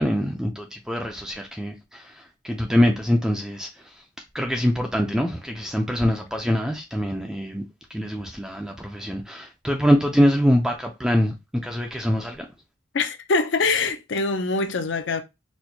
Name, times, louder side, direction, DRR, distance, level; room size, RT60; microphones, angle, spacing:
voice 1, 0.0-3.7 4.3-7.6 7.9-11.4 11.6-12.5, equal, 5° right, 0.3 m, -24 dB
voice 2, 12.9-15.2, left 3 dB, 65° left, 0.5 m, -24 dB
4.3 x 2.1 x 2.7 m
head